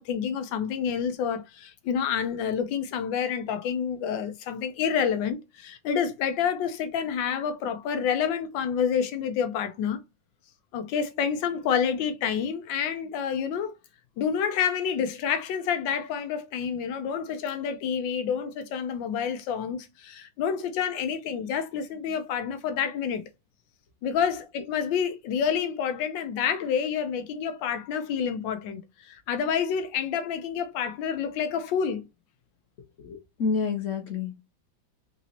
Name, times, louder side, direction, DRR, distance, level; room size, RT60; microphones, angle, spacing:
voice 1, 0.0-10.0 10.7-13.7 14.2-23.2 24.0-32.1, left 7 dB, 85° left, 1.4 m, -28 dB
voice 2, 33.0-34.4, left 5 dB, 50° left, 1.2 m, -29 dB
3.9 x 2.9 x 2.7 m
omnidirectional pair, 2.0 m